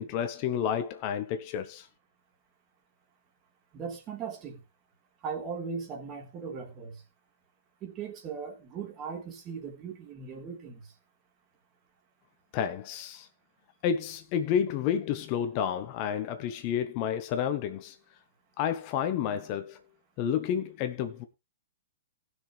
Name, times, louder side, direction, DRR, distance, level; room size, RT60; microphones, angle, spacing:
voice 1, 0.0-1.9 12.5-13.3 13.8-18.0 18.6-19.8 20.2-21.2, left 8 dB, 35° left, 1.2 m, -30 dB
voice 2, 3.7-4.6 5.2-7.0 7.8-10.8, right 6 dB, 30° right, 3.5 m, -38 dB
18.5 x 6.4 x 3.4 m
figure-of-eight pair, 110°, 0 cm